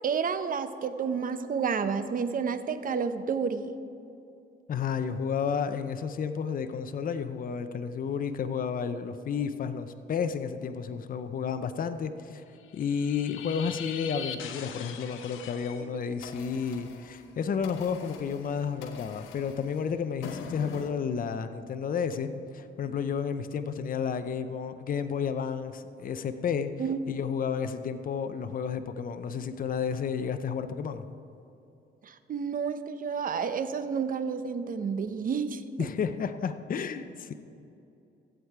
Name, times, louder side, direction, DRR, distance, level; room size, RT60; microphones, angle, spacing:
voice 1, 0.0-3.7 26.8-27.0 32.0-35.9, right 6 dB, 45° right, 11 dB, 0.7 m, -30 dB
voice 2, 4.7-12.4 12.7-26.7 27.1-31.0 35.8-37.3, left 6 dB, 45° left, 10 dB, 0.6 m, -31 dB
sound 1, 12.6-15.8 16.2-20.9, left 7 dB, 90° left, 0.9 m, -42 dB
15.0 x 8.1 x 4.8 m, 2.6 s
cardioid pair, 90°, 20 cm